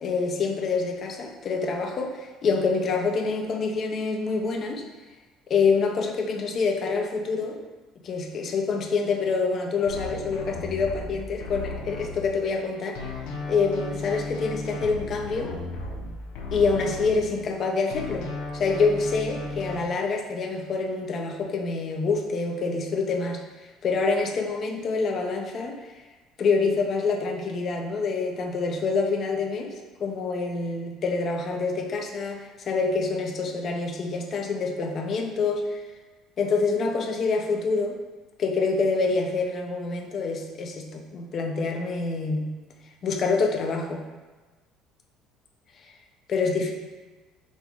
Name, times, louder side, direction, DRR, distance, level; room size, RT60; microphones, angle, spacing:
voice 1, 0.0-4.8 5.5-7.6 8.0-13.0 13.5-15.5 16.5-18.3 18.5-23.4 23.8-25.8 26.4-35.8 36.4-38.0 38.4-42.6 43.0-44.0 46.3-46.7, left 4 dB, 35° left, 2 dB, 0.5 m, -26 dB
sound 1, 9.9-12.6 12.9-17.6 17.9-19.7, left 2 dB, 85° left, 0.7 m, -35 dB
5.3 x 2.1 x 4.6 m, 1.3 s
cardioid pair, 165°, 0 cm